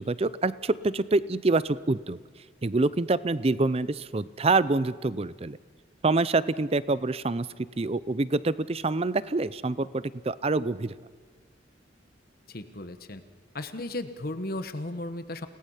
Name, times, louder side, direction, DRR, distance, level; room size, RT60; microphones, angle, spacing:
voice 1, 0.0-2.2 2.6-5.6 6.0-7.5 7.8-10.9, right 3 dB, 30° right, 17 dB, 0.5 m, -26 dB
voice 2, 12.5-13.2 13.5-15.5, left 1 dB, 55° left, 9 dB, 1.2 m, -35 dB
29.5 x 18.0 x 5.7 m, 1.5 s
head